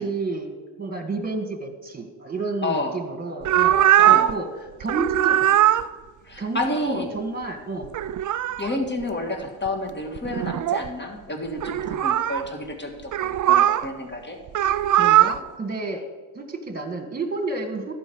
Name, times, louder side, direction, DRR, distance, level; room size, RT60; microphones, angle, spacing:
voice 1, 0.0-5.5 6.4-7.9 14.6-16.0 16.3-17.9, right 3 dB, 20° right, 5 dB, 1.8 m, -30 dB
sound 1, 3.4-4.4 4.8-5.9 7.8-8.7 9.7-9.8 10.2-10.9 11.6-12.4 13.1-13.9 14.5-15.4, right 12 dB, 45° right, 0.4 m, -20 dB
voice 2, 6.2-7.1 8.6-14.4, left 2 dB, 25° left, 3 dB, 1.8 m, -30 dB
11.5 x 4.6 x 7.9 m, 1.3 s
supercardioid pair, 70°, 47 cm